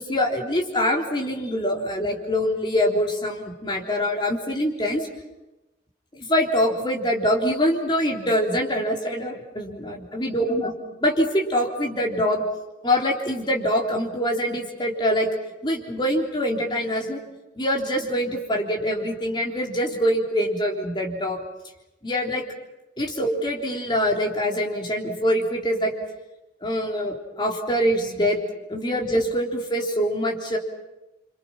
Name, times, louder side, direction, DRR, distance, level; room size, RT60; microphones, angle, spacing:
voice 1, 0.0-5.1 6.1-10.7 11.0-12.4 12.8-15.3 15.6-17.2 17.6-21.4 22.0-22.4 23.0-25.9 26.6-28.4 28.7-30.6, equal, 25° left, -1 dB, 3.6 m, -24 dB
27.5 x 25.5 x 6.0 m, 1.0 s
head